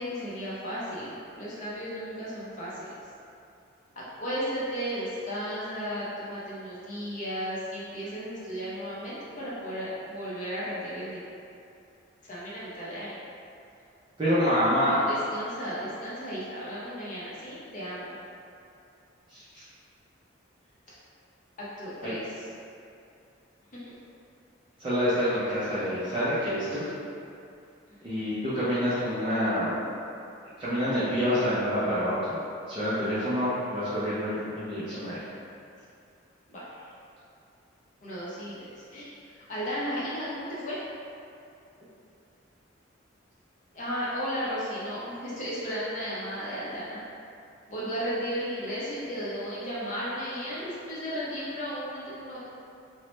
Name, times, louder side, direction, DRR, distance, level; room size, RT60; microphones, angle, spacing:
voice 1, 0.0-2.9 4.0-11.2 12.2-13.2 14.9-18.2 20.9-21.0 21.6-22.5 23.9-24.0 28.1-28.3 36.5-36.9 38.0-39.2 39.5-40.8 43.7-47.0 47.7-52.4, equal, 40° left, -9 dB, 0.6 m, -34 dB
voice 2, 14.2-15.0 19.3-19.6 22.0-22.1 24.8-26.9 28.0-29.8 30.6-32.4 32.7-35.2, equal, 25° right, -12 dB, 0.4 m, -27 dB
3.0 x 2.1 x 3.0 m, 2.6 s
head